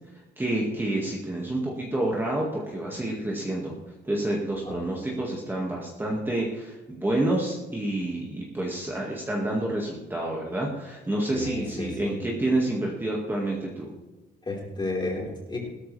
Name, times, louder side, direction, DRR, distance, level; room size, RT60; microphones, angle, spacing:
voice 1, 0.4-3.7 4.0-13.9, right 1 dB, 10° right, -3 dB, 1.9 m, -28 dB
voice 2, 11.3-12.1 14.5-15.6, left 2 dB, 25° left, -2 dB, 4.4 m, -32 dB
16.5 x 13.0 x 3.4 m, 1.2 s
cardioid pair, 130°, 18 cm